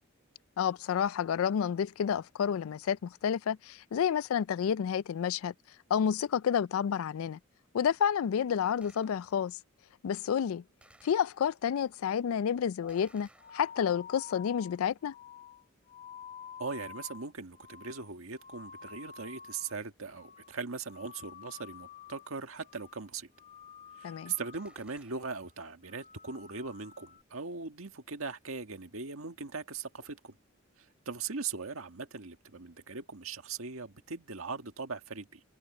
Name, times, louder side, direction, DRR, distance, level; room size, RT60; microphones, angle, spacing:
voice 1, 0.6-5.5 5.9-7.4 7.7-9.6 10.0-10.6 11.0-13.3 13.5-15.1 24.0-24.3, left 8 dB, 80° left, 0.3 m, -30 dB
Gunshot gunfire, 8.8-9.6 10.8-11.8 12.9-14.1 24.5-25.6, right 1 dB, 5° right, 3.7 m, -62 dB
sound 1, 12.8-19.8 20.1-20.6 20.9-22.3 22.6-23.1 23.4-24.8 25.2-25.5 25.9-27.2, left 7 dB, 35° left, 0.5 m, -50 dB
voice 2, 16.6-23.3 24.0-30.4 30.8-35.4, right 4 dB, 80° right, 1.7 m, -40 dB
head